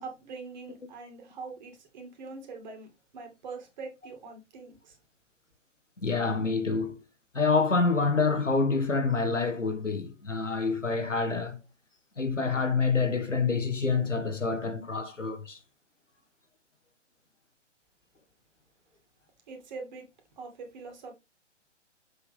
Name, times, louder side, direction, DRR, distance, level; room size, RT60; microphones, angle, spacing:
voice 1, 0.0-2.9 3.1-5.0 19.5-20.1 20.4-21.1, right 4 dB, 40° right, 2.4 m, -43 dB
voice 2, 6.0-7.0 7.3-11.6 12.2-15.6, left 4 dB, 85° left, 1.7 m, -27 dB
7.1 x 6.4 x 3.4 m
figure-of-eight pair, 130°, 36 cm